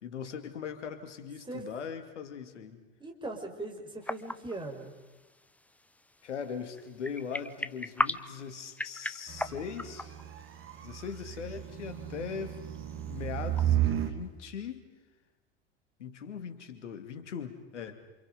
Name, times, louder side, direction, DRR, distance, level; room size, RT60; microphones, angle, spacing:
voice 1, 0.0-2.8 6.2-10.2 10.8-12.6 13.1-14.9 16.0-18.1, left 7 dB, 75° left, 8 dB, 2.6 m, -40 dB
voice 2, 3.0-4.9, right 2 dB, 15° right, 3 dB, 5.1 m, -40 dB
sound 1, 4.0-13.7, left 1 dB, 5° left, 0.8 m, -40 dB
sound 2, 9.3-14.2, right 11 dB, 35° right, 2.4 m, -33 dB
28.5 x 27.5 x 5.3 m, 1.2 s
figure-of-eight pair, 80°, 36 cm